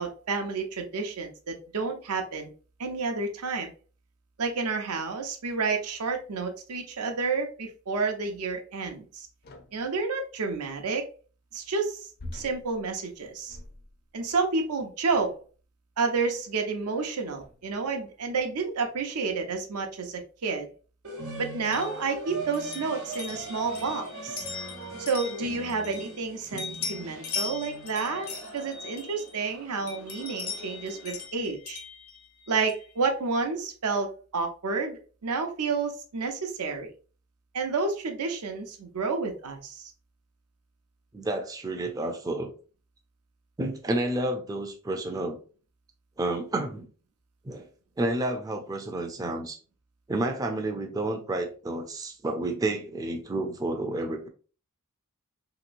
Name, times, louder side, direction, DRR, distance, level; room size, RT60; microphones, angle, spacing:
voice 1, 0.0-2.5 2.8-3.7 4.4-9.3 9.7-11.1 11.5-13.6 14.1-15.3 16.0-20.7 21.4-24.4 25.0-28.3 28.5-31.8 32.5-36.9 37.5-39.9, right 4 dB, 85° right, 4 dB, 0.6 m, -30 dB
sound 1, 9.4-10.0 12.2-14.2 15.0-15.5 16.4-16.5 17.4-17.8, left 1 dB, 45° left, 0.5 m, -45 dB
sound 2, 21.0-31.3, right 2 dB, 60° right, 0.9 m, -41 dB
sound 3, 21.6-26.3 26.6-29.5 29.9-32.9, left 5 dB, 80° left, 0.8 m, -40 dB
voice 2, 41.1-42.5 43.6-45.4 46.2-46.9 47.4-47.7 48.0-49.6 50.1-54.3, right 2 dB, 15° right, 4 dB, 0.3 m, -30 dB
3.0 x 2.9 x 2.5 m, 0.37 s
head